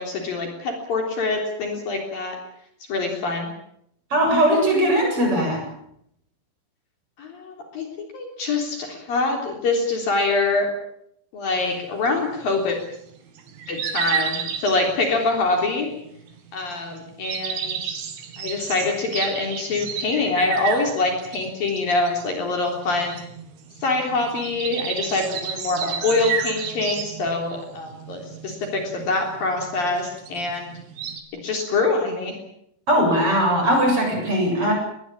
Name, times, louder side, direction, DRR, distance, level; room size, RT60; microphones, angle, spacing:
voice 1, 0.0-2.4 2.9-3.5 7.2-10.7 11.3-12.8 13.7-15.9 16.5-18.0 18.4-23.2 23.8-30.7 31.4-32.4, left 3 dB, 50° left, 2 dB, 5.1 m, -25 dB
voice 2, 4.1-5.7 32.9-34.7, equal, 30° right, 1 dB, 8.4 m, -19 dB
sound 1, 11.6-31.2, right 8 dB, 75° right, 4.9 m, -32 dB
21.5 x 20.5 x 8.7 m, 0.73 s
omnidirectional pair, 5.4 m